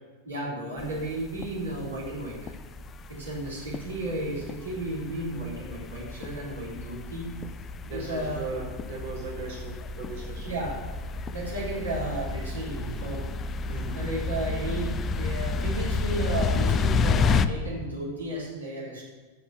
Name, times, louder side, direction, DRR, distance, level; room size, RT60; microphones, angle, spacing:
voice 1, 0.2-2.5 3.1-7.3 7.9-8.5 10.4-10.8 11.3-13.3 13.9-19.0, right 1 dB, 75° right, -6 dB, 4.0 m, -33 dB
sound 1, 0.8-17.5, left 4 dB, 25° left, 0.5 m, -31 dB
voice 2, 7.8-10.6 13.6-14.2, right 3 dB, 55° right, -4 dB, 3.9 m, -38 dB
8.7 x 7.7 x 8.2 m, 1.4 s
figure-of-eight pair, 90°, 0 cm